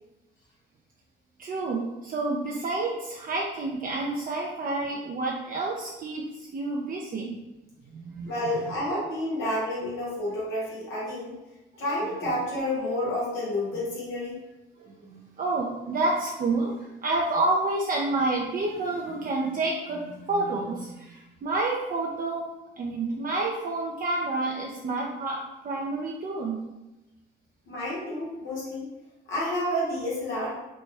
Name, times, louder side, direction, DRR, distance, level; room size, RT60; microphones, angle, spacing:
voice 1, 1.4-7.4 7.9-8.4 14.8-22.5 22.8-26.6, right 2 dB, 45° right, -2 dB, 0.5 m, -29 dB
voice 2, 8.2-11.3 11.8-14.4 27.7-28.9 29.3-30.6, left 1 dB, 85° left, -7 dB, 1.3 m, -30 dB
4.2 x 2.2 x 3.3 m, 1.0 s
cardioid pair, 90°, 20 cm